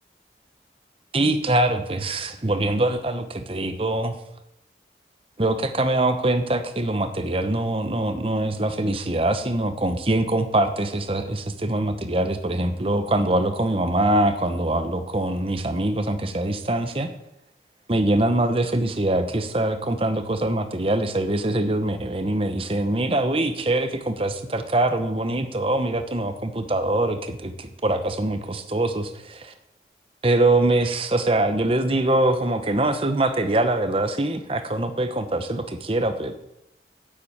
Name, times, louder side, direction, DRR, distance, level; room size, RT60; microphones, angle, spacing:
voice 1, 1.1-4.1 5.4-17.1 17.9-29.5 30.2-36.3, right 1 dB, 30° right, 8 dB, 0.9 m, -23 dB
9.7 x 7.7 x 8.7 m, 0.85 s
head